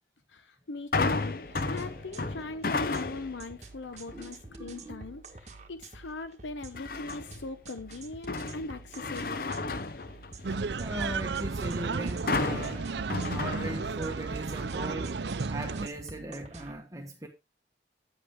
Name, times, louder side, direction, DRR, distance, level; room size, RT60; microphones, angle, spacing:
voice 1, 0.3-9.6, left 3 dB, 85° left, 0.8 m, -40 dB
sound 1, 0.9-3.4 3.9-4.3 6.8-7.4 7.9-10.7 12.3-14.2 14.6-14.7, left 3 dB, 50° left, 0.7 m, -33 dB
sound 2, 1.4-16.7, right 3 dB, 40° right, 1.4 m, -49 dB
voice 2, 4.1-5.1 10.8-12.9 13.3-15.2 15.5-17.3, right 1 dB, 20° right, 1.2 m, -39 dB
sound 3, 10.4-15.9, right 4 dB, 70° right, 0.6 m, -33 dB
10.0 x 7.9 x 3.6 m
head